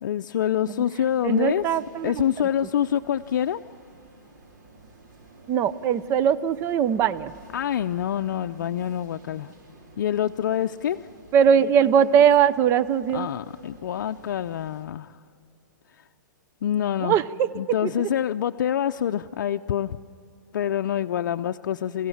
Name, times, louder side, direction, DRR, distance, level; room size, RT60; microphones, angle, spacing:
voice 1, 0.0-1.6 2.0-3.6 7.5-9.5 10.0-11.0 13.1-15.2 16.6-17.2 17.5-20.0 20.5-22.1, left 10 dB, 70° left, 7 dB, 0.5 m, -26 dB
sound 1, 1.1-14.8, right 2 dB, 70° right, 4.9 m, -51 dB
voice 2, 1.2-2.2 5.5-7.3 11.3-13.3 17.0-17.5 17.8-18.1, right 8 dB, 25° right, 15 dB, 0.5 m, -20 dB
28.5 x 16.0 x 7.2 m, 2.6 s
hypercardioid pair, 145°, 10 cm